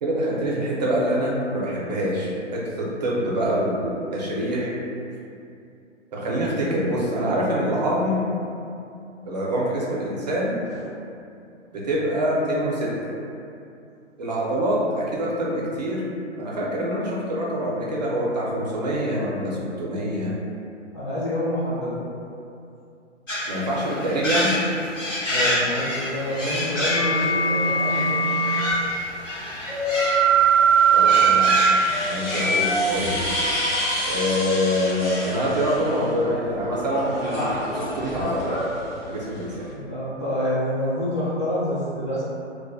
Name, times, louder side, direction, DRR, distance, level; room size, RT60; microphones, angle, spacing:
voice 1, 0.0-4.7 6.1-8.2 9.2-10.6 11.7-13.1 14.2-16.1 16.4-20.3 23.5-24.5 30.9-33.2 34.1-38.4 39.1-39.7, equal, 35° right, -4 dB, 0.4 m, -25 dB
voice 2, 20.9-22.0 25.3-28.2 32.1-32.2 39.7-42.2, left 1 dB, 25° left, -12 dB, 0.5 m, -27 dB
sound 1, 23.3-32.4, left 1 dB, 85° left, 1.2 m, -28 dB
sound 2, 26.9-28.7 29.7-33.7, right 4 dB, 65° left, 1.1 m, -20 dB
sound 3, 28.7-28.8 30.1-36.1 36.5-39.7, left 1 dB, 40° left, 1.0 m, -30 dB
2.3 x 2.1 x 2.5 m, 2.6 s
figure-of-eight pair, 130°, 37 cm